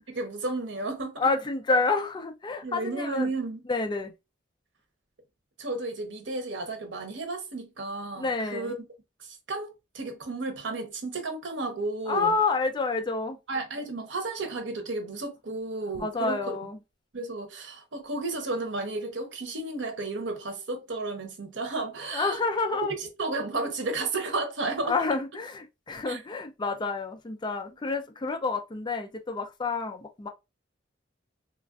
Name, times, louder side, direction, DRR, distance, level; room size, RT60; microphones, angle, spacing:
voice 1, 0.1-1.3 2.6-3.6 5.6-8.7 9.2-12.3 13.5-16.6 17.1-22.4 23.2-24.9 26.1-26.2, right 2 dB, 75° right, 0.8 m, -33 dB
voice 2, 1.2-3.3 3.7-4.1 8.1-8.7 12.1-13.4 16.0-16.8 22.1-22.9 24.8-30.3, left 3 dB, 25° left, 0.4 m, -29 dB
3.1 x 2.4 x 2.3 m
head